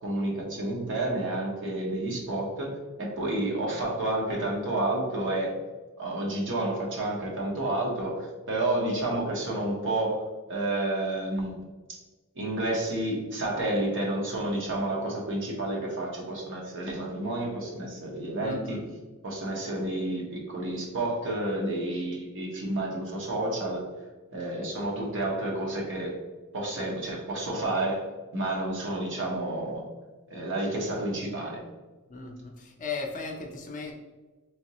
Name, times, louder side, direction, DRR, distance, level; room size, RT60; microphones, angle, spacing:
voice 1, 0.0-2.7 3.0-5.5 6.0-10.2 10.5-11.6 12.4-18.8 19.2-23.8 24.3-26.1 26.5-28.1 28.3-29.8 30.3-31.6, right 1 dB, 60° right, -1 dB, 1.1 m, -30 dB
voice 2, 18.4-18.8 32.1-33.9, left 4 dB, 35° left, 2 dB, 0.6 m, -36 dB
3.7 x 3.5 x 3.0 m, 1.2 s
head